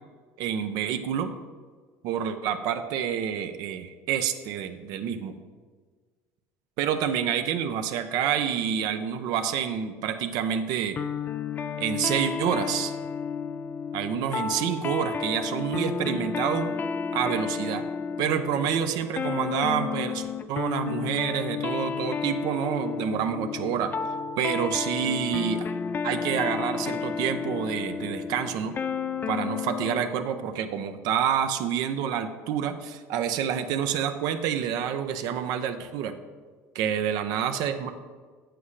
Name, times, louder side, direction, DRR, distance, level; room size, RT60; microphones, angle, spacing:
voice 1, 0.4-1.3 2.0-5.3 6.8-11.0 11.8-12.9 13.9-16.7 17.1-17.8 18.2-23.9 24.4-25.6 26.0-28.7 29.3-36.2 36.7-37.9, right 8 dB, 70° right, 8 dB, 0.6 m, -28 dB
sound 1, 10.9-30.1, left 6 dB, 25° left, 0.3 m, -32 dB
8.3 x 7.8 x 3.2 m, 1.5 s
supercardioid pair, 115°, 7 cm